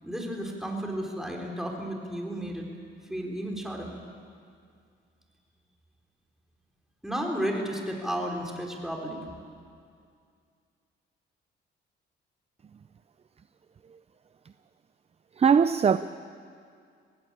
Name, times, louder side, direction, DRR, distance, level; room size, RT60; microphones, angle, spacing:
voice 1, 0.0-2.7 3.1-3.9 7.0-9.2, equal, ahead, 4.2 m, -33 dB
voice 2, 15.4-16.0, right 6 dB, 30° right, 0.5 m, -20 dB
20.5 x 17.5 x 8.7 m
cardioid pair, 90°, 20 cm